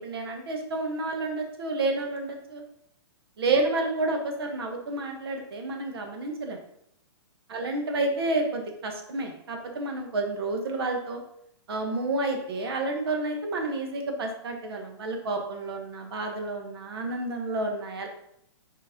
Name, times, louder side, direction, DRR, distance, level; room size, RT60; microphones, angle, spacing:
voice 1, 0.0-2.6 3.4-6.6 7.5-11.2 11.7-18.1, right 2 dB, 60° right, 3 dB, 1.5 m, -30 dB
5.1 x 4.2 x 5.3 m, 0.74 s
hypercardioid pair, 170°, 15 cm